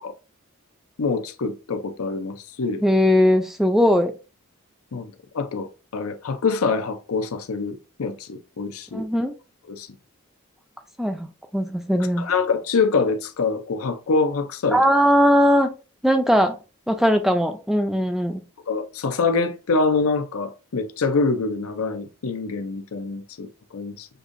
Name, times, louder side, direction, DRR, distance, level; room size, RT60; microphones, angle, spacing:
voice 1, 1.0-2.8 4.9-9.0 9.7-9.9 12.2-14.8 18.7-24.1, left 4 dB, 80° left, 0.6 m, -25 dB
voice 2, 2.8-4.1 8.9-9.3 11.0-12.2 14.7-15.7 16.0-16.6 16.9-18.4, equal, ahead, 0.4 m, -19 dB
6.6 x 2.6 x 2.5 m
head